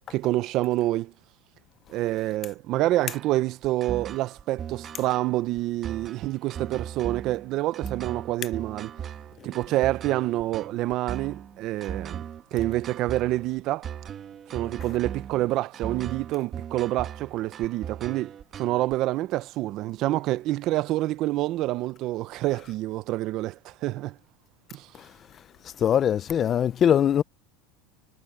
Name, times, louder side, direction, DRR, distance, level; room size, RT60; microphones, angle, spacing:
voice 1, 0.1-1.1 1.9-8.9 9.4-12.2 12.5-13.9 14.5-24.2 24.7-24.9, right 16 dB, 45° right, 0.7 m, -27 dB
sound 1, 3.1-18.9, right 9 dB, 30° right, 1.4 m, -38 dB
voice 2, 25.8-27.2, left 9 dB, 30° left, 0.6 m, -22 dB
supercardioid pair, 145°, 0 cm